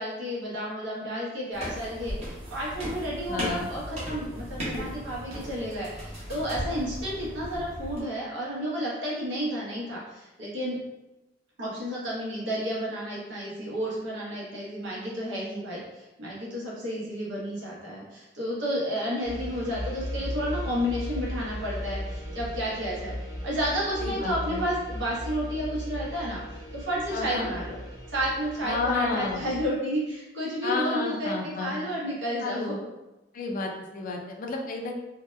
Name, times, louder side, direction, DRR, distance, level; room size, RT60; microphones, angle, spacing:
voice 1, 0.0-10.8 11.6-23.2 23.4-26.4 26.7-27.8 28.1-32.7, equal, 80° right, -5 dB, 0.8 m, -31 dB
sound 1, 1.5-8.0, equal, 35° right, 0.8 m, -36 dB
voice 2, 3.3-3.7 24.0-24.6 27.1-27.5 28.6-29.4 30.6-31.8 32.4-32.8 33.3-34.9, left 3 dB, 45° left, 1 dB, 0.3 m, -31 dB
sound 2, 19.2-29.7, equal, 20° right, 0.4 m, -37 dB
2.6 x 2.1 x 2.2 m, 1.0 s
head